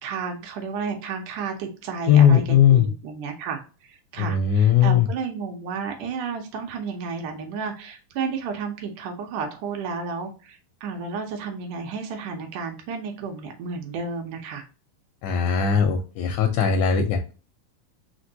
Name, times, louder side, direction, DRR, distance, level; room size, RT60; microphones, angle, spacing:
voice 1, 0.0-3.6 3.9-14.6, right 5 dB, 75° right, 3 dB, 2.1 m, -32 dB
voice 2, 2.1-2.9 4.2-5.1 15.2-17.3, left 8 dB, 85° left, 5 dB, 1.7 m, -18 dB
5.2 x 3.1 x 2.7 m, 0.34 s
omnidirectional pair, 3.9 m